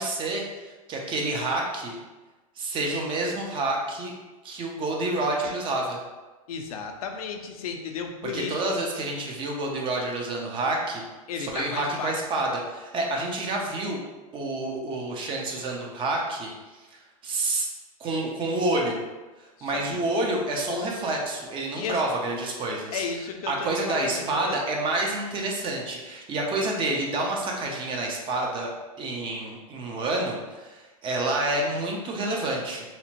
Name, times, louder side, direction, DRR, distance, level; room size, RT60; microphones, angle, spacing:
voice 1, 0.0-2.0 2.6-4.1 4.4-6.0 8.2-11.0 11.4-14.0 14.3-16.5 16.9-17.7 18.0-19.0 19.4-23.0 23.5-28.7 29.0-33.0, right 2 dB, 25° right, 0 dB, 0.5 m, -28 dB
voice 2, 6.5-8.6 11.3-12.2 19.6-20.0 20.7-21.0 21.8-22.0 22.9-24.7, left 5 dB, 75° left, 4 dB, 0.4 m, -34 dB
2.8 x 2.1 x 2.8 m, 1.2 s
hypercardioid pair, 120°, 19 cm